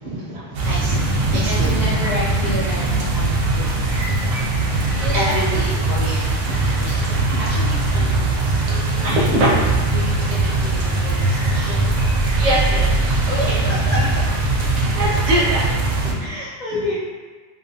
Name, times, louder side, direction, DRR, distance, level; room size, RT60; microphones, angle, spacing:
voice 1, 0.0-1.7 2.8-2.9 5.1-5.4 5.9-7.2 8.7-9.5 12.4-13.6 14.7-15.7 16.0-16.2, right 1 dB, 50° right, -5 dB, 0.7 m, -24 dB
sound 1, 0.5-16.1, right 2 dB, 80° right, 0.9 m, -20 dB
voice 2, 1.4-4.2 5.0-5.8 6.5-6.6 7.0-9.5 9.9-11.9 12.3-12.4 13.3-14.0 16.2-17.0, left 1 dB, 55° left, -10 dB, 0.5 m, -31 dB
2.6 x 2.5 x 2.6 m, 1.4 s
omnidirectional pair, 1.2 m